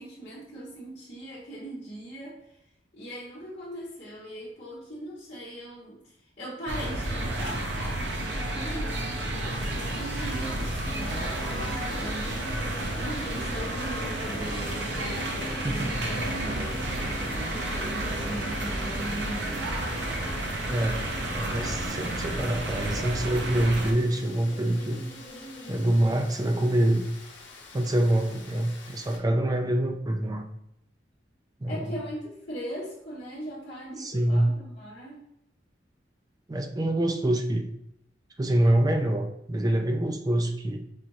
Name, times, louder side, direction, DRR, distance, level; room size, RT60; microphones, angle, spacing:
voice 1, 0.0-2.5 2.9-12.7 13.0-19.7 31.7-35.2, right 1 dB, 40° left, -10 dB, 1.0 m, -40 dB
sound 1, 6.7-23.9, right 1 dB, 70° right, 0.7 m, -31 dB
Rain, 9.5-29.2, left 3 dB, 80° left, 0.8 m, -48 dB
sound 2, 10.9-25.9, equal, 25° left, 0.7 m, -43 dB
voice 2, 20.7-25.0 25.7-27.1 27.7-30.4 31.6-31.9 34.0-34.6 36.5-37.7 38.4-40.8, right 1 dB, 20° right, 4 dB, 0.4 m, -25 dB
4.9 x 2.6 x 2.9 m, 0.78 s
head